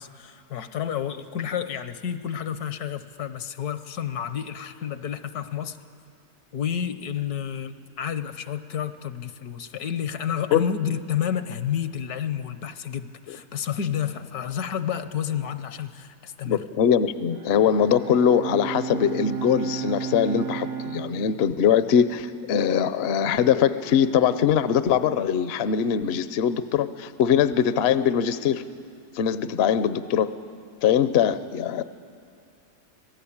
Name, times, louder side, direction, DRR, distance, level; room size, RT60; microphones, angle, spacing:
voice 1, 0.0-5.8 6.5-16.6, left 8 dB, 75° left, 12 dB, 1.4 m, -30 dB
voice 2, 16.4-28.6 29.1-30.4 30.8-31.8, left 8 dB, 55° left, 13 dB, 0.8 m, -22 dB
Bowed string instrument, 17.3-22.8, right 8 dB, 55° right, 0.8 m, -34 dB
26.0 x 18.5 x 8.6 m, 2.4 s
omnidirectional pair, 1.7 m